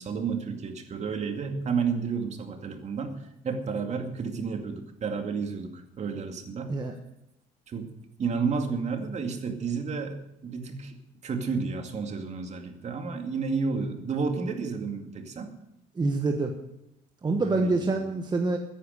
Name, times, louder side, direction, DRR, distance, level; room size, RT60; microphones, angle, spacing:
voice 1, 0.0-6.9 7.7-7.9 8.2-11.0 11.2-15.5 17.3-18.1, right 5 dB, 40° right, 5 dB, 2.3 m, -31 dB
voice 2, 16.0-16.5 17.2-18.6, right 3 dB, 25° right, 3 dB, 1.4 m, -26 dB
14.0 x 10.0 x 6.6 m, 0.85 s
cardioid pair, 110°, 17 cm